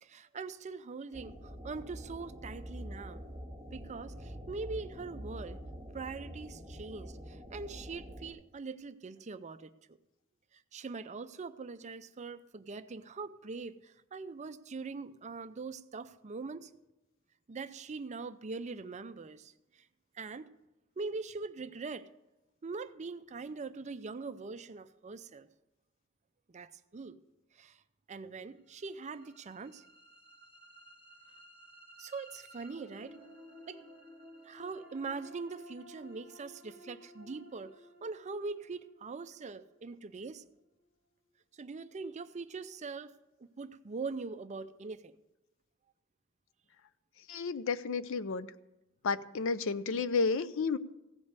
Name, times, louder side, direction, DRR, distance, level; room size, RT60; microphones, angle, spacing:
voice 1, 0.0-3.2 3.7-5.6 5.9-9.7 10.5-16.7 17.5-19.5 20.2-20.5 21.0-22.1 22.6-25.5 26.5-27.2 27.6-27.8 28.1-29.8 32.0-33.2 33.7-33.8 34.5-37.7 38.0-40.4 41.6-43.1 43.6-45.1, right 4 dB, 35° right, 12 dB, 0.5 m, -42 dB
sound 1, 1.1-8.3, equal, 5° left, 1.6 m, -46 dB
sound 2, 28.8-40.9, equal, 25° left, 2.5 m, -56 dB
voice 2, 47.3-48.5 49.0-50.8, left 4 dB, 65° left, 15 dB, 0.5 m, -31 dB
16.0 x 5.4 x 8.0 m, 0.96 s
head